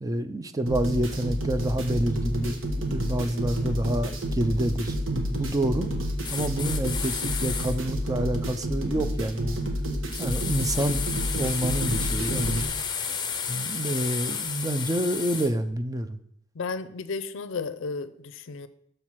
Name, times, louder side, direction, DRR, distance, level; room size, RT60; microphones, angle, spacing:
voice 1, 0.0-5.9 6.3-9.6 10.2-12.6 13.5-16.2, right 1 dB, 20° right, 10 dB, 0.4 m, -28 dB
sound 1, 0.7-12.7, equal, 75° right, 1.3 m, -30 dB
sound 2, 6.2-7.8 10.1-15.5, left 6 dB, 20° left, 0.7 m, -32 dB
voice 2, 16.6-18.7, left 4 dB, 70° left, 14 dB, 0.5 m, -33 dB
6.6 x 5.7 x 4.6 m, 0.70 s
head